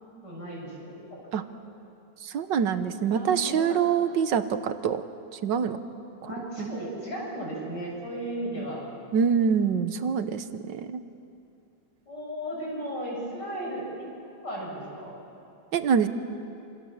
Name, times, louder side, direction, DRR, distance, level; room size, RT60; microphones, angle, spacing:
voice 1, 0.2-1.3 3.1-3.8 6.2-8.8 12.1-14.1 14.4-15.2, right 1 dB, 65° left, -3 dB, 8.1 m, -35 dB
voice 2, 2.2-5.0 5.4-5.8 6.2-6.8 9.1-11.0 15.7-16.1, right 7 dB, 75° right, 10 dB, 1.7 m, -25 dB
27.0 x 27.0 x 7.3 m, 2.7 s
omnidirectional pair, 2.0 m